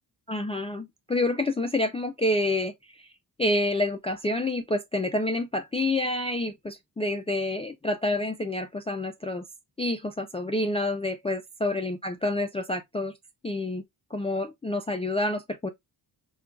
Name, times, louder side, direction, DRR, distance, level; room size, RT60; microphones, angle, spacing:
voice 1, 0.3-3.1 3.4-9.4 9.8-13.1 13.4-13.8 14.1-15.7, left 2 dB, 15° left, 0.3 m, -28 dB
5.1 x 2.3 x 2.2 m
cardioid pair, 95°, 43 cm